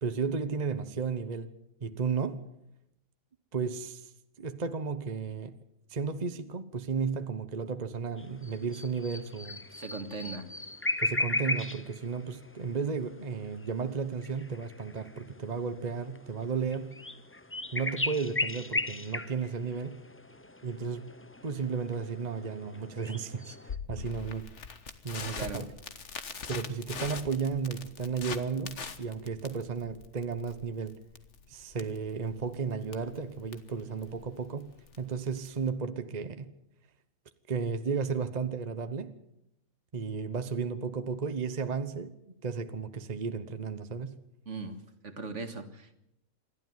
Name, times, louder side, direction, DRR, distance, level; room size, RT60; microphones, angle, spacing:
voice 1, 0.0-1.5 1.8-2.5 3.5-4.1 4.4-5.6 5.9-9.6 11.0-17.0 17.7-20.0 20.6-21.1 21.4-24.5 25.0-25.7 26.5-31.0 31.5-36.5 37.5-39.1 39.9-42.2 42.4-44.2, right 5 dB, 35° right, 1.1 m, -34 dB
sound 1, 8.2-23.7, left 2 dB, 15° left, 0.6 m, -37 dB
voice 2, 9.7-10.5 25.3-25.7 44.5-44.8 45.0-46.0, right 3 dB, 65° right, 2.2 m, -39 dB
Crackle, 23.7-35.7, left 5 dB, 60° left, 1.7 m, -43 dB
27.5 x 12.5 x 9.4 m
omnidirectional pair, 1.4 m